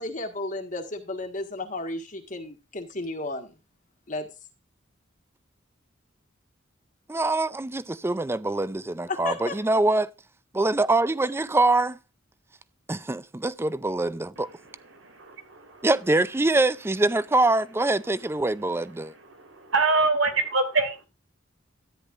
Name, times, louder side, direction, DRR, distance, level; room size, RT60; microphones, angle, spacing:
voice 1, 0.0-3.5 4.1-4.3 9.1-9.6, left 2 dB, 40° left, 1.6 m, -33 dB
voice 2, 7.1-10.1 10.5-12.0 12.9-14.5 15.8-19.1, right 2 dB, 10° right, 0.4 m, -24 dB
voice 3, 14.9-15.9 19.3-21.0, right 3 dB, 75° right, 2.5 m, -25 dB
13.5 x 9.9 x 2.5 m
head